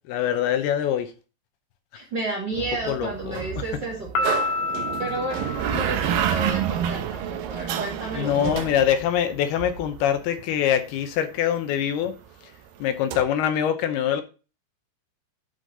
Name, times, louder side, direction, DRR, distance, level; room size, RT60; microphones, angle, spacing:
voice 1, 0.1-1.1 2.9-3.4 8.1-12.1 12.8-14.2, left 9 dB, 75° left, 2.6 m, -24 dB
voice 2, 1.9-4.5 5.0-8.7, right 2 dB, 40° right, 1.9 m, -32 dB
sound 1, 2.5-10.1 13.1-13.2, right 9 dB, 70° right, 2.3 m, -29 dB
Piano, 4.1-6.7, left 3 dB, 60° left, 3.2 m, -29 dB
10.0 x 5.1 x 3.9 m
omnidirectional pair, 4.8 m